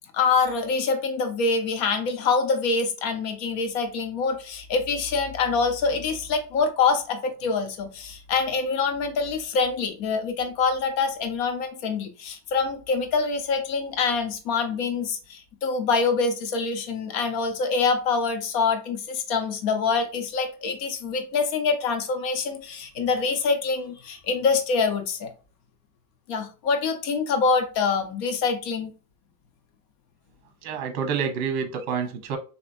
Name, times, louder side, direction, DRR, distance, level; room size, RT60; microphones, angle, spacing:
voice 1, 0.1-25.3 26.3-28.9, left 4 dB, 65° left, 0.9 m, -25 dB
voice 2, 30.6-32.4, right 6 dB, 65° right, 0.9 m, -28 dB
4.1 x 2.9 x 2.6 m
cardioid pair, 180°, 39 cm